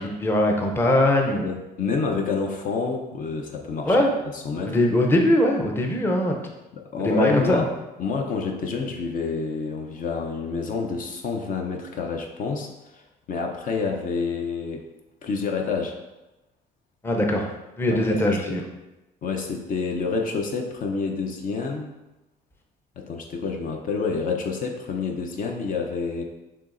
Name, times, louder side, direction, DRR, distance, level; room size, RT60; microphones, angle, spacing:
voice 1, 0.0-1.5 3.8-4.1 4.6-6.4 7.0-7.6 17.0-17.5 17.8-18.6, left 1 dB, 15° left, 2 dB, 0.6 m, -21 dB
voice 2, 1.4-4.0 4.3-4.8 6.7-7.7 8.0-13.0 13.3-14.8 15.2-16.0 17.9-18.6 19.2-21.9 23.0-26.2, left 4 dB, 55° left, 3 dB, 0.6 m, -28 dB
7.0 x 2.8 x 2.5 m, 1.0 s
cardioid pair, 110°, 17 cm